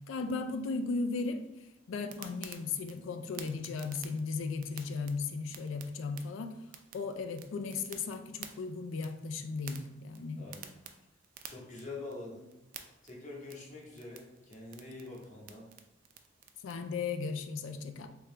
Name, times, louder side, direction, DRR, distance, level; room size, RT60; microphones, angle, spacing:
voice 1, 0.1-1.4 1.9-6.5 6.9-10.4 16.6-18.1, left 4 dB, 70° left, 8 dB, 0.4 m, -36 dB
sound 1, 2.1-16.7, right 8 dB, 45° right, 0.3 m, -52 dB
voice 2, 10.4-10.7 11.4-12.5 13.0-15.7, left 2 dB, 40° left, -3 dB, 0.9 m, -45 dB
3.5 x 2.9 x 3.2 m, 0.92 s
head